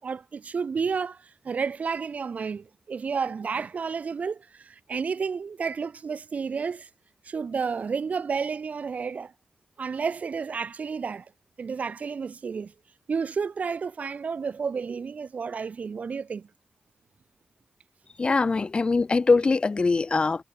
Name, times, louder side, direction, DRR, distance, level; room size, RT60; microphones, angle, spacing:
voice 1, 0.0-6.9 7.2-9.3 9.8-11.3 11.6-12.7 13.1-16.5, right 5 dB, 55° right, 7.5 m, -31 dB
voice 2, 18.2-20.4, left 4 dB, 35° left, 4.9 m, -22 dB
wide cardioid pair, 130°, 3 cm